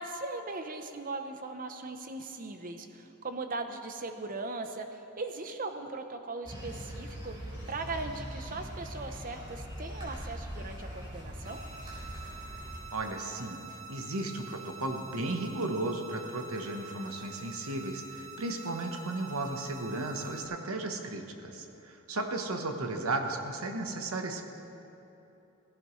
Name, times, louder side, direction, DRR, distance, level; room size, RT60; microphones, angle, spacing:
voice 1, 0.0-11.6, right 3 dB, 40° right, 7 dB, 0.8 m, -39 dB
sound 1, 6.4-12.8, equal, 25° right, 3.6 m, -41 dB
sound 2, 11.4-20.4, right 4 dB, 65° right, 1.7 m, -47 dB
voice 2, 12.9-24.4, right 2 dB, 80° right, 4 dB, 1.2 m, -35 dB
17.5 x 16.0 x 3.2 m, 2.9 s
head